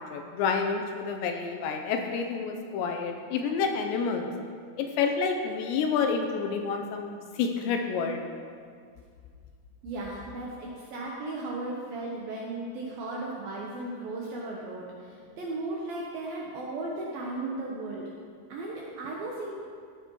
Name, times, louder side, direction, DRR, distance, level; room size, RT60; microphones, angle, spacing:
voice 1, 0.0-4.3 4.8-8.2, left 5 dB, 80° left, 4 dB, 2.8 m, -29 dB
voice 2, 9.8-18.1 18.5-19.5, right 2 dB, 75° right, -3 dB, 2.2 m, -36 dB
15.5 x 9.0 x 3.0 m, 2.1 s
omnidirectional pair, 5.4 m